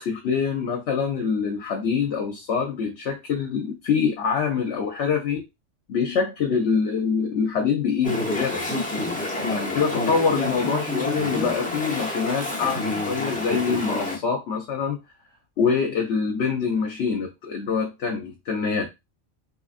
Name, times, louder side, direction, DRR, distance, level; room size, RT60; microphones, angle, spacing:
voice 1, 0.0-5.4 5.9-8.7 9.5-15.0 15.6-18.9, left 6 dB, 70° left, 2 dB, 0.9 m, -25 dB
Chatter / Stream, 8.0-14.2, left 2 dB, 10° left, 0.7 m, -28 dB
3.8 x 3.1 x 2.4 m, 0.23 s
omnidirectional pair, 1.3 m